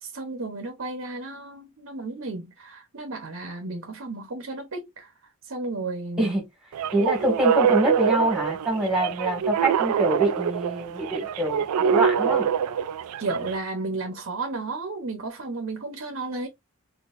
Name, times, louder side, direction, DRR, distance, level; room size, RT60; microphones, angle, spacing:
voice 1, 0.0-5.1 5.4-6.3 13.2-16.5, right 3 dB, 60° right, 0.8 m, -33 dB
sound 1, 6.7-13.6, right 8 dB, 90° right, 0.3 m, -25 dB
voice 2, 6.9-12.5, right 1 dB, 5° right, 1.8 m, -25 dB
4.3 x 2.7 x 2.5 m
head